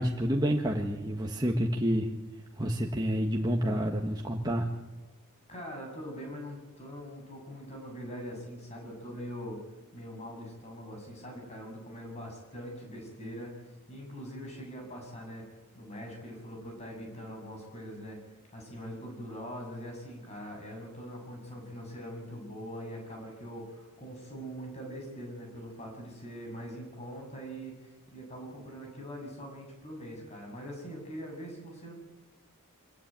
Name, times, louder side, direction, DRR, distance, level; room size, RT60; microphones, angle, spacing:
voice 1, 0.0-2.1 2.6-4.7, equal, 20° right, 0 dB, 1.5 m, -29 dB
voice 2, 5.5-9.6 9.9-13.5 13.9-15.4 15.7-18.2 18.5-31.9, equal, 30° left, 1 dB, 7.5 m, -42 dB
25.0 x 16.0 x 9.0 m, 1.2 s
head